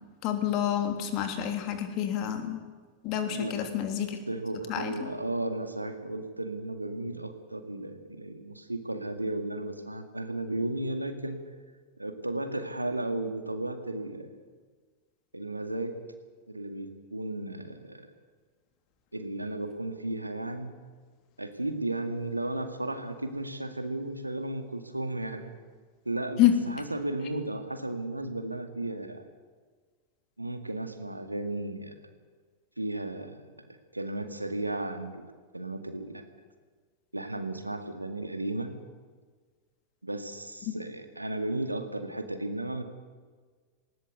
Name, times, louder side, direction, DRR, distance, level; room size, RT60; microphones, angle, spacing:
voice 1, 0.2-2.6 3.0-4.2 4.7-5.1 26.4-26.5, left 11 dB, 40° left, 7 dB, 3.1 m, -28 dB
voice 2, 3.2-3.7 4.3-11.4 12.0-14.3 15.3-16.0 16.5-18.1 19.1-20.7 21.4-25.5 26.1-29.2 30.4-32.0 32.8-35.3 35.5-36.2 37.1-38.7 40.0-42.8, right 2 dB, 85° right, 8 dB, 2.1 m, -34 dB
20.0 x 18.5 x 8.1 m, 1.5 s
figure-of-eight pair, 90°, 0 cm